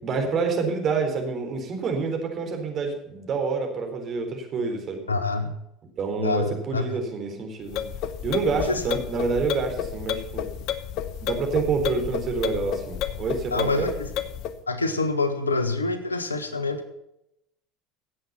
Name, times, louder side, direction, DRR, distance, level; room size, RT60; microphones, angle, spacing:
voice 1, 0.0-5.0 6.0-7.8 8.2-10.4 11.2-13.9, right 4 dB, 45° right, 3 dB, 4.0 m, -27 dB
voice 2, 5.1-5.5 6.2-6.8 8.6-8.8 13.5-14.1 14.7-16.9, left 3 dB, 90° left, 10 dB, 1.3 m, -26 dB
sound 1, 7.7-14.6, left 10 dB, 55° left, 1.0 m, -31 dB
17.0 x 7.9 x 5.7 m, 0.82 s
hypercardioid pair, 70°, 0 cm